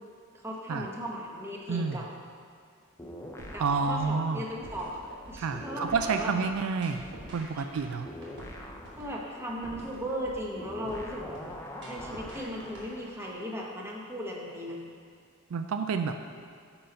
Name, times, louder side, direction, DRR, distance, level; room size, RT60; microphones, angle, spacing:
voice 1, 0.4-2.0 3.5-5.0 5.3-6.3 7.5-7.7 9.0-11.4 11.9-14.8, equal, 10° right, -2 dB, 0.9 m, -37 dB
voice 2, 1.7-2.0 3.6-4.4 5.4-7.1 7.3-8.1 15.5-16.1, right 5 dB, 70° right, 7 dB, 0.4 m, -29 dB
sound 1, 3.0-5.2 5.5-13.1, left 1 dB, 10° left, 0.5 m, -45 dB
sound 2, 3.4-13.3, right 1 dB, 55° right, 1.5 m, -46 dB
8.6 x 4.0 x 5.2 m, 2.1 s
head